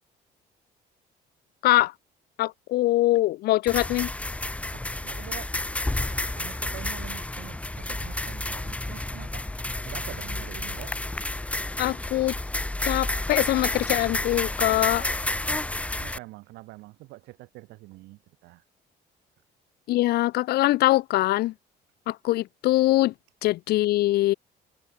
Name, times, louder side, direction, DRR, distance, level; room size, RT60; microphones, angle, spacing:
voice 1, 2.4-4.1 11.8-12.3 12.8-15.0 19.9-21.5 22.1-23.1 23.4-24.3, left 17 dB, 70° left, 0.5 m, -23 dB
sound 1, 3.7-16.2, left 2 dB, 10° left, 0.8 m, -30 dB
voice 2, 4.7-5.6 6.1-10.9 15.5-18.6, right 20 dB, 90° right, 2.3 m, -45 dB
cardioid pair, 110°, 17 cm